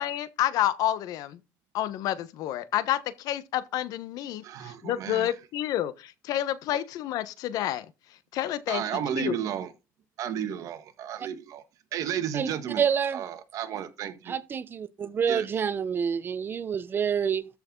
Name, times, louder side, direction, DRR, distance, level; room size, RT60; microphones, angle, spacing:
voice 1, 0.0-1.4 1.7-7.9 8.3-8.8 9.2-9.4, left 12 dB, 65° left, 1.2 m, -29 dB
voice 2, 4.4-5.3 8.7-9.7 10.2-11.6 11.9-12.8 13.1-14.3 15.3-15.5, right 9 dB, 55° right, 1.7 m, -33 dB
voice 3, 12.8-13.2 14.3-17.5, right 7 dB, 30° right, 0.8 m, -27 dB
13.5 x 6.4 x 3.9 m
cardioid pair, 135°, 7 cm